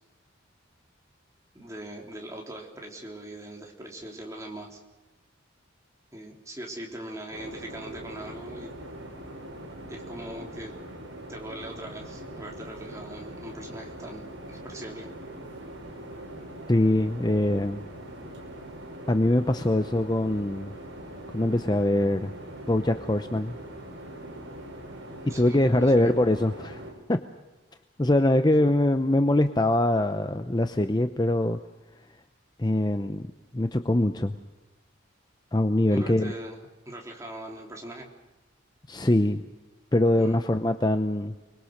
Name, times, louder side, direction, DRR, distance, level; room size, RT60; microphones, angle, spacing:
voice 1, 1.5-4.8 6.1-8.7 9.9-10.7 11.3-15.1 25.3-26.1 28.6-28.7 35.9-36.6 36.9-38.1 40.2-40.4, right 1 dB, 15° right, 0 dB, 3.5 m, -41 dB
sound 1, 7.3-26.9, right 1 dB, 65° right, 5.5 m, -42 dB
voice 2, 16.7-17.8 19.1-20.7 21.3-22.3 22.7-23.6 25.2-26.8 27.1-27.2 28.0-31.6 32.6-33.3 33.5-34.3 35.5-36.3 38.9-39.4 39.9-41.3, left 1 dB, 20° left, 8 dB, 0.7 m, -23 dB
29.5 x 21.5 x 6.6 m, 1.1 s
head